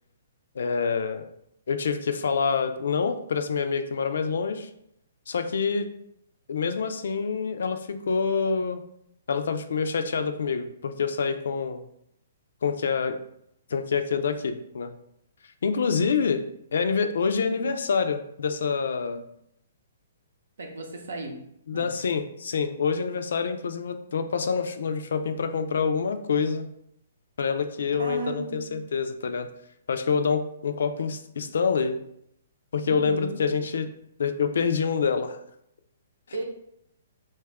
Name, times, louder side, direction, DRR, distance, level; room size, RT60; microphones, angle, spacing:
voice 1, 0.6-1.3 1.7-4.7 5.3-5.9 6.5-7.8 8.1-8.8 9.3-11.8 12.6-13.2 13.7-14.9 15.6-16.4 16.7-19.2 21.7-26.7 27.4-29.5 29.9-32.0 32.7-33.9 34.2-35.4, left 5 dB, 70° left, 8 dB, 0.3 m, -26 dB
voice 2, 20.6-21.4 21.7-21.9 27.9-28.8 32.8-33.5 36.3-36.4, right 3 dB, 75° right, 2 dB, 0.7 m, -35 dB
2.8 x 2.3 x 3.4 m, 0.75 s
hypercardioid pair, 135°, 0 cm